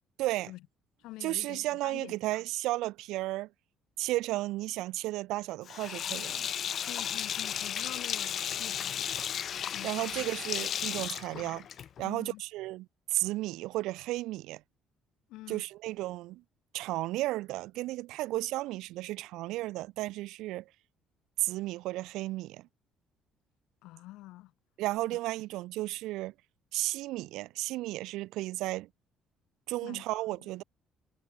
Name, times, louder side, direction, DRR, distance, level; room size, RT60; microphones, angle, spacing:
voice 1, 0.2-0.5 1.2-3.5 4.0-6.5 9.8-11.7 12.0-14.6 15.5-16.4 16.7-20.6 21.4-22.7 24.8-26.3 26.7-28.9 29.7-30.6, right 18 dB, 85° right, 0.8 m, -33 dB
voice 2, 1.0-2.4 6.9-9.1 9.7-10.2 10.5-10.6 12.0-12.4 15.3-15.6 23.8-24.5 25.1-25.2 29.8-30.5, left 18 dB, 85° left, 6.0 m, -47 dB
Sink (filling or washing), 5.7-12.1, left 9 dB, 45° left, 1.0 m, -34 dB
cardioid pair, 135°, 0 cm